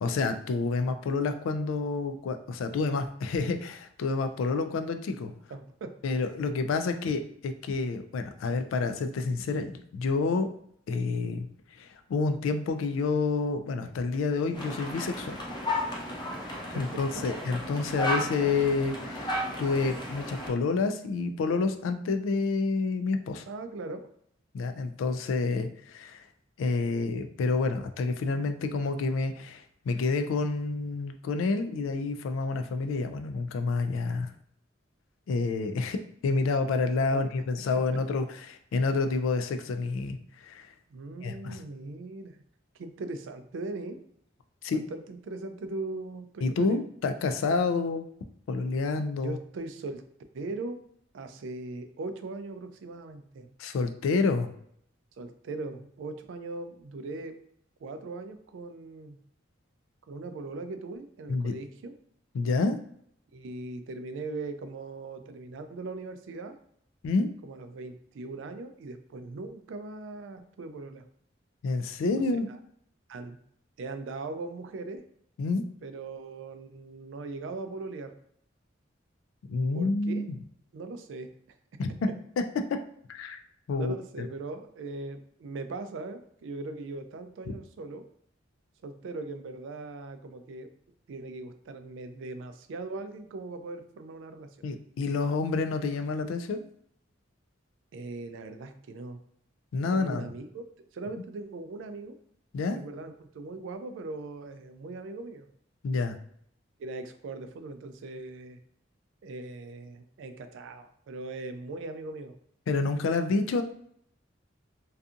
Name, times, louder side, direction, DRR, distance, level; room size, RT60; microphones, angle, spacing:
voice 1, 0.0-5.3 6.0-10.5 10.9-11.5 11.7-15.4 16.4-23.4 24.5-26.2 26.6-34.3 35.3-36.0 36.2-40.2 40.4-40.7 41.2-41.6 44.6-44.8 46.4-48.0 48.5-49.4 53.6-54.5 61.3-61.5 62.3-62.8 67.0-67.3 71.6-72.5 75.4-75.6 79.5-80.3 81.8-82.1 82.4-82.5 83.1-83.4 83.7-84.3 87.5-87.6 94.6-96.6 99.7-100.3 102.5-102.8 105.8-106.2 112.7-113.6, left 3 dB, 85° left, 8 dB, 0.3 m, -29 dB
voice 2, 5.5-6.0 16.7-17.3 23.5-24.1 37.1-37.2 37.9-38.0 40.9-42.4 42.8-44.0 44.9-46.8 49.2-50.0 50.3-50.8 51.1-53.5 55.2-57.4 57.8-59.2 60.1-61.9 63.3-66.6 67.4-71.1 72.5-72.6 73.1-73.4 73.8-75.0 75.8-78.1 79.7-80.3 80.7-81.3 81.9-82.0 83.7-88.0 88.8-90.7 91.1-94.6 97.9-99.2 99.9-100.6 100.9-102.2 102.7-105.5 106.8-108.6 109.2-112.4, right 3 dB, 70° right, 8 dB, 0.3 m, -39 dB
sound 1, 14.5-20.5, left 1 dB, 25° left, 0.5 m, -34 dB
2.6 x 2.4 x 2.4 m, 0.68 s
head